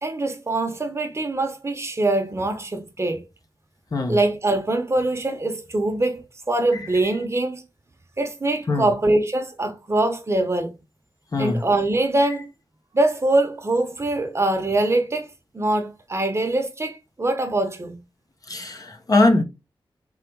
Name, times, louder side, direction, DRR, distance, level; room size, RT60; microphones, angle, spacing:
voice 1, 0.0-3.2 4.1-7.6 8.2-10.7 11.4-12.5 12.9-18.0, right 2 dB, 30° right, 1.0 m, -23 dB
voice 2, 18.5-19.4, left 2 dB, 40° left, 0.9 m, -21 dB
3.9 x 3.0 x 4.6 m
wide cardioid pair, 115°, 9 cm